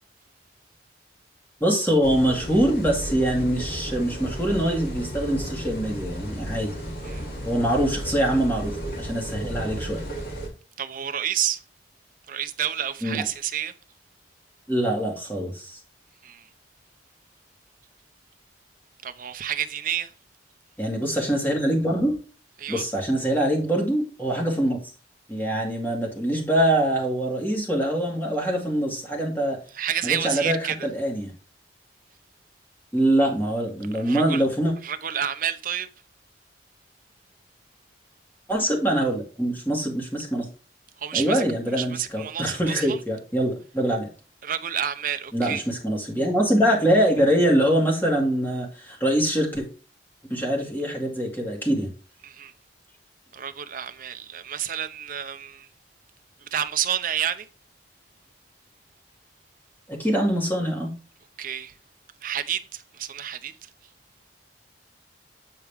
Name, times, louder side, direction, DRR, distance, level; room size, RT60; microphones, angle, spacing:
voice 1, 1.6-6.7 7.5-10.0 13.0-13.2 14.7-15.8 20.8-22.1 22.7-24.8 25.3-29.6 30.0-31.3 32.9-34.7 38.5-40.5 41.1-44.1 45.3-49.7 50.3-51.9 59.9-60.9, right 1 dB, 10° left, 2.2 m, -24 dB
sound 1, 2.0-10.5, right 1 dB, 50° left, 2.6 m, -34 dB
voice 2, 10.8-11.6 12.3-13.7 16.2-16.4 19.0-20.1 22.6-22.8 29.8-30.8 34.1-34.4 34.8-35.9 41.0-41.4 41.8-43.0 44.4-45.6 52.2-52.5 53.3-55.7 56.5-57.5 61.4-61.7 62.2-63.5, right 9 dB, 45° right, 0.6 m, -29 dB
8.7 x 4.7 x 3.5 m
head